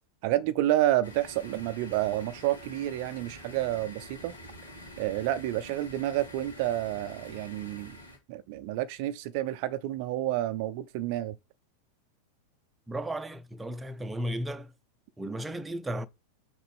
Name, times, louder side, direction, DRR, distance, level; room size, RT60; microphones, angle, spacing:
voice 1, 0.2-4.4 5.0-8.0 8.3-11.4, right 14 dB, 45° right, 0.5 m, -29 dB
sound 1, 1.0-8.2, left 1 dB, 80° left, 3.5 m, -47 dB
voice 2, 12.9-14.7 15.2-16.1, right 1 dB, 10° right, 0.7 m, -34 dB
6.5 x 4.8 x 5.4 m
figure-of-eight pair, 90°, 0 cm